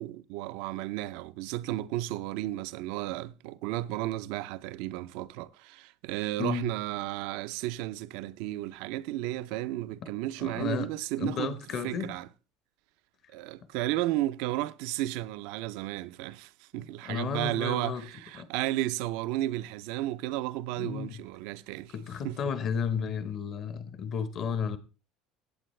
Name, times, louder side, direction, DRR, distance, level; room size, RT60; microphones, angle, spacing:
voice 1, 0.0-12.3 13.3-21.9 22.2-22.5, right 15 dB, 75° right, 0.5 m, -33 dB
voice 2, 6.4-6.7 10.0-10.1 10.4-10.9 11.2-12.1 17.0-18.0 18.4-18.5 20.8-21.1 21.9-24.8, left 7 dB, 45° left, 1.2 m, -33 dB
15.0 x 8.6 x 3.2 m
supercardioid pair, 115°, 0 cm